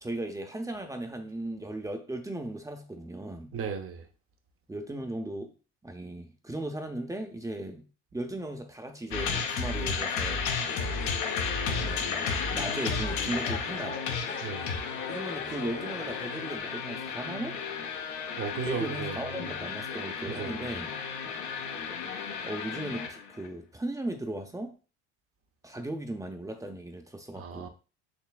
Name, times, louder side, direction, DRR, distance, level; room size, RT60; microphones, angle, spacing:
voice 1, 0.0-3.6 4.7-5.5 5.8-7.9 8.1-10.5 11.4-14.0 15.1-17.6 18.7-21.0 22.4-24.7 25.6-27.7, right 1 dB, 10° right, 0.7 m, -37 dB
voice 2, 3.5-4.1 14.4-14.7 18.4-19.2 20.3-20.7 27.3-27.7, right 6 dB, 40° right, 0.8 m, -35 dB
sound 1, 9.1-23.5, left 5 dB, 60° left, 0.9 m, -33 dB
sound 2, 10.7-16.6, left 6 dB, 35° left, 0.7 m, -41 dB
4.6 x 3.1 x 2.4 m
supercardioid pair, 85°, 34 cm